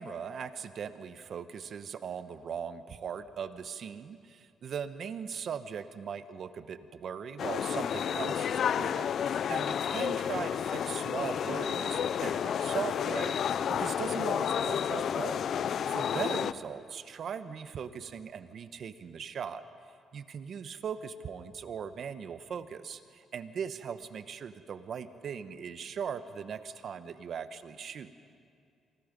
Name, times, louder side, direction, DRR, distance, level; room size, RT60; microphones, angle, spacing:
voice 1, 0.0-15.4 15.9-19.6 20.1-28.1, right 7 dB, 60° right, 11 dB, 1.1 m, -39 dB
sound 1, 7.4-16.5, left 8 dB, 60° left, 0.5 m, -31 dB
27.0 x 24.0 x 5.3 m, 2.3 s
cardioid pair, 90°, 0 cm